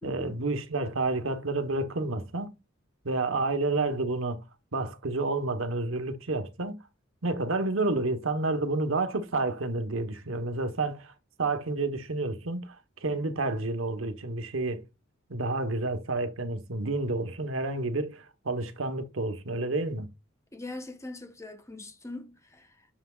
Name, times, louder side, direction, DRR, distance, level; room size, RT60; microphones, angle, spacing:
voice 1, 0.0-2.5 3.0-4.4 4.7-6.8 7.2-11.1 11.4-12.8 13.0-14.8 15.3-20.1, right 2 dB, 75° right, 1.1 m, -30 dB
voice 2, 20.5-22.9, left 2 dB, 15° left, 0.9 m, -42 dB
7.1 x 5.8 x 2.4 m
head